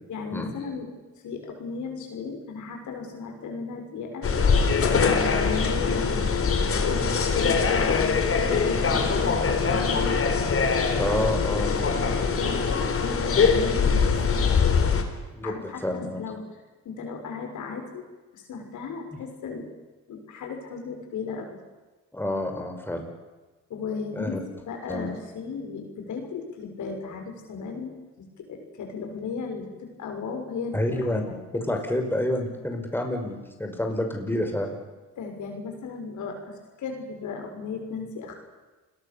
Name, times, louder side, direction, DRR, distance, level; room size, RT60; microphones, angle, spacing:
voice 1, 0.1-0.9 1.2-4.2 4.7-6.5 6.8-8.1 8.4-10.2 11.7-12.7 13.0-14.8 15.4-18.1 18.3-19.7 20.1-21.6 23.7-31.9 35.2-38.4, left 4 dB, 75° left, 4 dB, 6.5 m, -35 dB
sound 1, 4.2-15.0, left 5 dB, 50° left, 3.9 m, -23 dB
voice 2, 10.9-11.7 15.3-16.2 22.1-23.1 24.1-24.4 24.9-25.1 30.7-31.2 31.5-34.8, left 1 dB, 5° left, 3 dB, 5.6 m, -28 dB
29.5 x 21.5 x 7.1 m, 1.2 s
cardioid pair, 90°, 30 cm